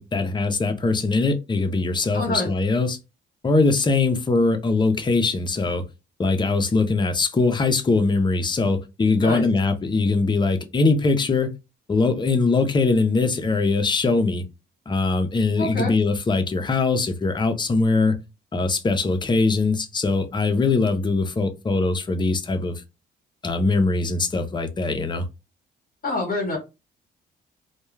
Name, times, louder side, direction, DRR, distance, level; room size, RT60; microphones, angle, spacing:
voice 1, 0.0-3.0 3.4-5.8 6.2-11.5 11.9-14.4 14.9-18.1 18.5-22.8 23.4-25.2, left 3 dB, 25° left, 0.5 m, -21 dB
voice 2, 2.1-2.5 9.2-9.4 15.6-15.9 26.0-26.6, left 2 dB, 45° left, 1.1 m, -26 dB
2.2 x 2.2 x 3.1 m
cardioid pair, 90°, 20 cm